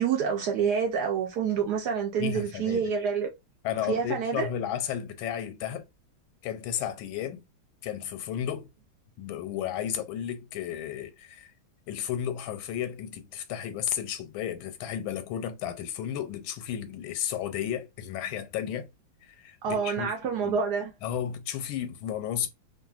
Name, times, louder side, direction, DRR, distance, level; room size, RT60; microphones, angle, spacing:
voice 1, 0.0-3.3 3.9-4.5 19.6-20.9, right 6 dB, 70° right, 1.0 m, -27 dB
voice 2, 2.2-2.9 3.6-5.8 6.4-7.4 7.8-8.7 9.2-11.5 11.9-18.9 19.2-20.6 21.0-22.5, left 10 dB, 85° left, 1.4 m, -33 dB
3.0 x 2.5 x 2.3 m
omnidirectional pair, 2.1 m